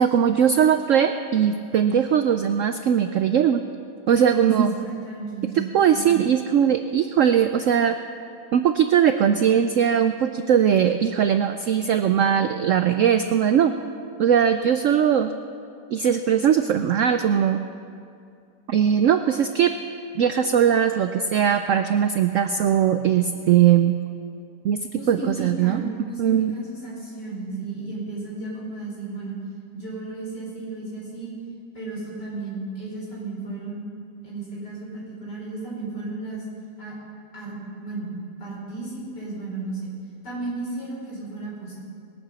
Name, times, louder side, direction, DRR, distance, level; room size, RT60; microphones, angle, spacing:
voice 1, 0.0-3.6 4.1-4.9 5.5-8.0 8.5-13.7 14.2-15.3 15.9-17.6 18.7-19.7 20.1-23.9 24.6-24.8 25.1-25.9 26.2-26.6 27.5-27.7, right 8 dB, 75° right, 8 dB, 0.7 m, -20 dB
voice 2, 4.3-5.5 24.9-29.3 29.7-31.3 31.7-33.8 34.2-36.4 36.8-36.9 37.3-37.6 37.8-38.1 38.4-39.9 40.2-41.7, right 2 dB, 70° left, -5 dB, 5.4 m, -34 dB
21.0 x 8.8 x 6.2 m, 2.4 s
omnidirectional pair, 1.9 m